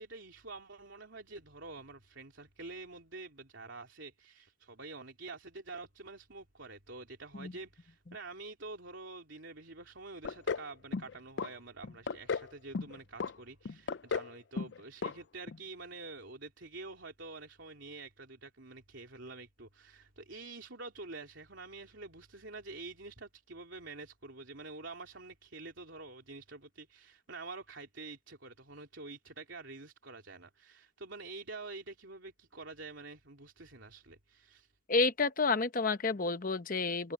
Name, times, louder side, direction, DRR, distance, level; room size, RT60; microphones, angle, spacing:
voice 1, 0.0-34.7, right 3 dB, 65° right, 3.2 m, -47 dB
sound 1, 10.2-10.7 10.9-11.5 11.8-12.5 12.7-13.3 13.6-14.3 14.6-14.8 15.0-15.1 15.5-15.6, left 5 dB, 60° left, 0.4 m, -34 dB
voice 2, 34.9-37.1, left 4 dB, 40° left, 0.9 m, -30 dB
head